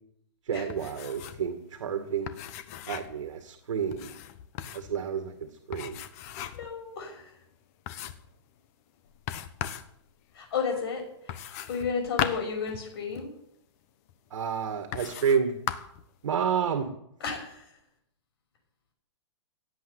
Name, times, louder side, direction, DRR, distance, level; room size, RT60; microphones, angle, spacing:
voice 1, 0.5-2.3 2.9-4.1 4.7-6.0 14.3-15.6 16.2-16.9, right 7 dB, 70° right, 6 dB, 2.2 m, -30 dB
sound 1, 0.7-1.5 1.7-1.8 2.3-3.2 3.9-5.0 5.7-6.7 7.2-7.3 7.9-8.3 9.3-9.9 11.3-13.3 14.1-14.2 14.9-15.4 15.7-16.0, left 10 dB, 30° left, 1.0 m, -37 dB
voice 2, 6.5-7.3 10.3-11.4 11.7-13.3 17.2-17.7, left 5 dB, 50° left, 3 dB, 6.2 m, -33 dB
17.0 x 8.4 x 8.3 m, 0.75 s
hypercardioid pair, 165°, 16 cm